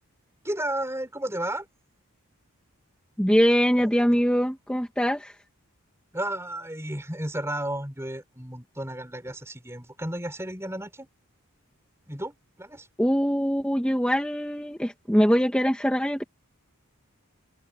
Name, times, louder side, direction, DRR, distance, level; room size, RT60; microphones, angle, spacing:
voice 1, 0.4-1.7 3.8-3.9 6.1-11.1 12.1-12.9, right 1 dB, 10° right, 5.1 m, -33 dB
voice 2, 3.2-5.4 13.0-16.2, equal, 5° left, 1.4 m, -23 dB
open air
head